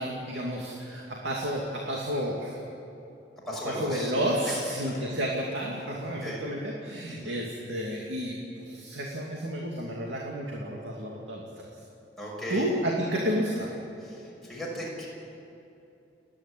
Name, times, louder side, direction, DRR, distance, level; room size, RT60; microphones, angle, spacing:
voice 1, 0.0-2.6 3.6-11.6 12.5-13.7, equal, 90° right, -2 dB, 2.6 m, -31 dB
voice 2, 3.5-4.1 4.5-4.6 6.1-6.4 7.1-7.4 12.2-12.7 14.0-15.1, equal, ahead, -5 dB, 6.4 m, -36 dB
29.5 x 10.5 x 10.0 m, 2.8 s
head